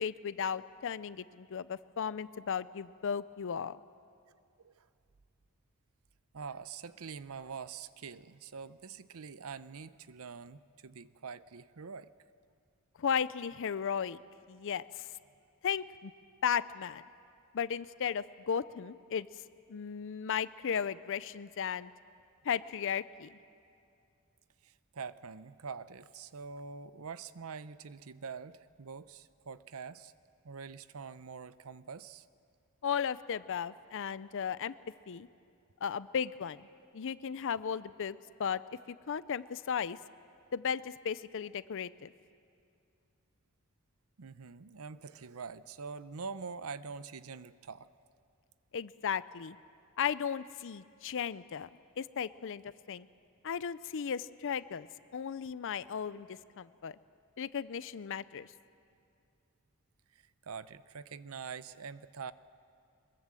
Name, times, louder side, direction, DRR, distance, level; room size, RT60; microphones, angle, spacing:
voice 1, 0.0-3.8 13.0-14.2 14.5-15.1 15.6-16.1 16.4-17.0 17.5-19.3 19.7-21.9 22.4-23.3 32.8-34.7 35.1-35.3 35.8-36.7 36.9-38.6 38.9-40.0 40.5-42.1 48.7-49.6 50.0-51.7 52.0-52.6 52.9-53.1 53.4-54.9 55.1-57.0 57.4-58.5, left 7 dB, 60° left, 17 dB, 0.5 m, -35 dB
voice 2, 4.3-4.9 6.3-12.1 24.6-30.1 30.4-32.3 44.2-47.9 60.1-62.3, right 5 dB, 70° right, 15 dB, 0.7 m, -45 dB
23.0 x 22.0 x 7.6 m, 2.5 s
head